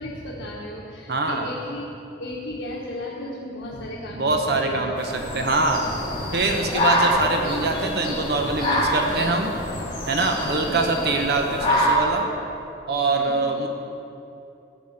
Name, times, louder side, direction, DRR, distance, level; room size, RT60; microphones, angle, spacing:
voice 1, 0.0-1.8 2.2-4.9 6.9-7.1 10.7-10.8 13.2-13.4, left 1 dB, 90° left, -4 dB, 1.3 m, -34 dB
voice 2, 1.1-1.5 4.2-5.8 6.3-9.5 10.1-12.3 12.9-13.7, right 3 dB, 60° right, 3 dB, 1.0 m, -24 dB
sound 1, 5.0-11.9, left 1 dB, 25° left, 2.7 m, -26 dB
sound 2, 5.9-11.0, equal, 45° right, 1.9 m, -38 dB
14.0 x 6.2 x 8.6 m, 2.8 s
head